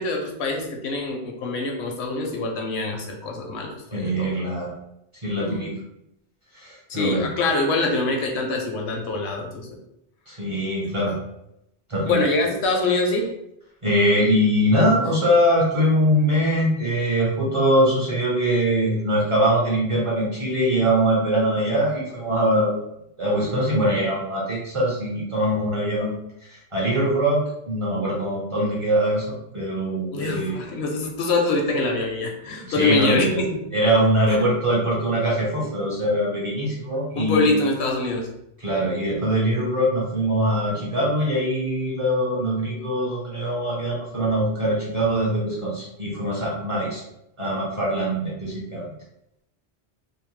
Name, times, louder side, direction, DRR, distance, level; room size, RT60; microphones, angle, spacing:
voice 1, 0.0-4.3 5.4-5.7 6.9-9.8 12.0-13.3 30.1-33.6 34.3-34.4 37.2-38.3, left 2 dB, 75° left, 2 dB, 0.8 m, -24 dB
voice 2, 3.9-4.7 5.2-5.7 6.5-7.3 10.3-11.1 11.9-12.2 13.8-22.8 23.2-26.2 26.5-30.6 32.6-33.4 33.7-37.5 38.6-47.0 47.4-48.9, equal, 35° right, -5 dB, 0.6 m, -22 dB
2.7 x 2.0 x 3.0 m, 0.81 s
omnidirectional pair, 1.2 m